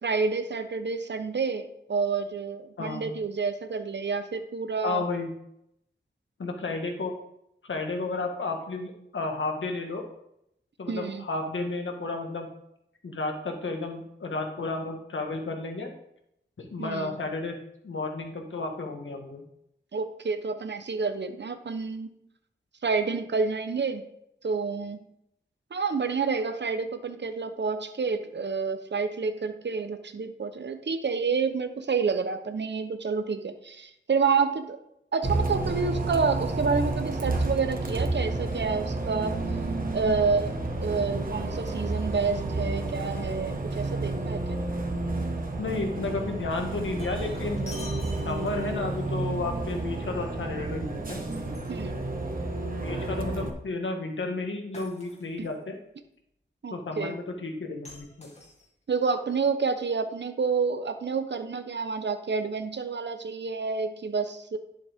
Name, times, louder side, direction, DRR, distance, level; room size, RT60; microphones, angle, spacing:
voice 1, 0.0-5.0 10.9-11.2 16.8-17.2 19.9-22.1 22.8-24.1 24.4-25.0 25.7-34.8 35.1-39.4 39.9-40.5 40.8-44.6 51.7-52.0 55.4-55.5 56.6-57.2 58.9-64.6, right 5 dB, 65° right, 9 dB, 0.9 m, -29 dB
voice 2, 2.8-3.1 4.8-5.3 6.4-7.1 7.6-10.0 10.8-12.5 13.0-15.9 16.6-19.4 45.6-47.6 48.2-51.2 52.8-55.7 56.7-58.3, left 3 dB, 80° left, 3 dB, 1.6 m, -32 dB
Bus, 35.2-53.5, right 2 dB, 45° right, 1.4 m, -31 dB
Shatter, 46.7-48.8 51.1-52.4 54.7-55.5 57.8-58.9, left 2 dB, 35° left, 2.3 m, -46 dB
11.0 x 7.1 x 3.6 m, 0.76 s
wide cardioid pair, 75°, 20 cm